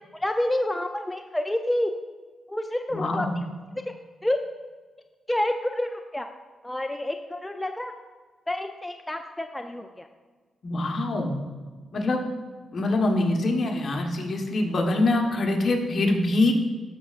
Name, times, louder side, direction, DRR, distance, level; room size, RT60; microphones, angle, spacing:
voice 1, 0.1-1.9 2.5-3.3 4.2-4.4 5.3-6.3 6.6-7.9 8.5-10.1, left 1 dB, 10° left, 5 dB, 0.4 m, -28 dB
voice 2, 2.9-3.3 10.6-11.4 11.9-12.2 12.7-16.5, left 2 dB, 55° left, 2 dB, 1.2 m, -24 dB
13.0 x 6.3 x 2.5 m, 1.4 s
cardioid pair, 85°, 0 cm